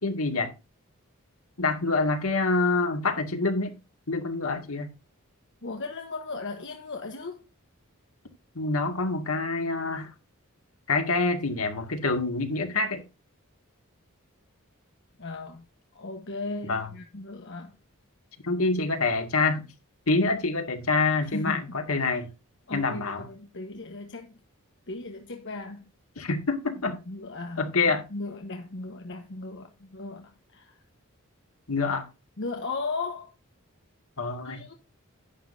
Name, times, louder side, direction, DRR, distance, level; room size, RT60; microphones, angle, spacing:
voice 1, 0.0-0.5 1.6-3.8 4.1-4.9 8.6-10.1 10.9-13.0 16.7-16.9 18.4-19.7 20.1-22.3 22.7-23.2 26.2-27.0 27.6-28.0 31.7-32.1 34.2-34.6, left 3 dB, 75° left, 2.2 m, -26 dB
voice 2, 5.6-7.4 15.2-15.6 15.9-17.7 21.2-21.8 22.1-22.2 22.7-24.4 24.9-25.8 27.1-30.8 32.4-33.3 34.4-34.7, left 3 dB, 60° left, 1.3 m, -36 dB
11.0 x 9.6 x 2.7 m
head